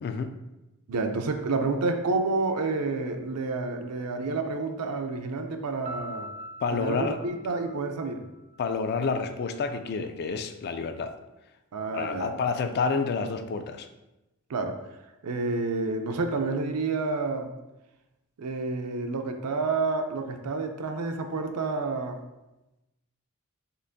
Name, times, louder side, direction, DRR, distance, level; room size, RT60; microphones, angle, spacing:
voice 1, 0.0-0.3 6.6-7.2 8.6-11.1 11.9-13.9, left 4 dB, 45° left, 8 dB, 0.3 m, -29 dB
voice 2, 0.9-6.3 6.7-8.2 11.7-12.3 14.5-14.8 15.2-17.5 18.4-22.2, right 3 dB, 85° right, 6 dB, 0.5 m, -29 dB
Piano, 5.8-8.7, equal, 30° right, 0.4 m, -42 dB
6.7 x 2.5 x 2.6 m, 0.98 s
head